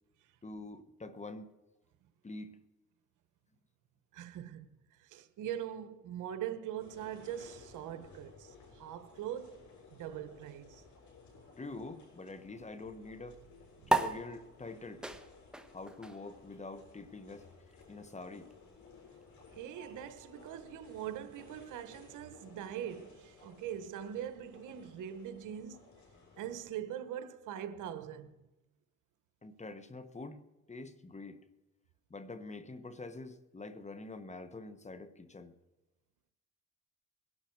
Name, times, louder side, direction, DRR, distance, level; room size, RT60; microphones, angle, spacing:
voice 1, 0.4-1.5 2.2-2.6 11.6-13.5 13.9-15.0 15.7-17.5 17.9-18.5 29.4-30.4 30.7-31.4 32.1-35.5, left 3 dB, 25° left, 1.3 m, -46 dB
voice 2, 4.1-4.7 5.0-10.8 13.8-13.9 19.6-25.8 26.4-28.4, right 10 dB, 85° right, 1.1 m, -42 dB
sound 1, 6.8-26.7, left 4 dB, 70° left, 7.3 m, -58 dB
sound 2, 13.9-20.7, right 2 dB, 5° right, 1.4 m, -38 dB
21.0 x 12.0 x 4.7 m
cardioid pair, 90°, 30 cm